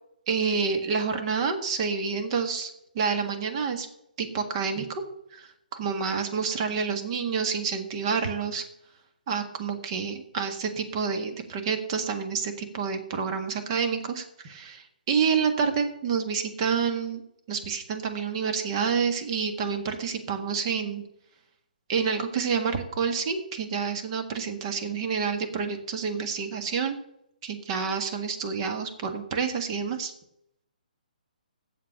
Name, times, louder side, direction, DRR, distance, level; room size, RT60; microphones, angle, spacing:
voice 1, 0.3-3.9 4.2-5.0 5.3-8.6 9.3-17.2 17.5-21.0 21.9-27.0 27.4-30.1, right 6 dB, 35° right, 6 dB, 1.7 m, -28 dB
7.6 x 7.5 x 8.6 m, 0.77 s
figure-of-eight pair, 135°, 5 cm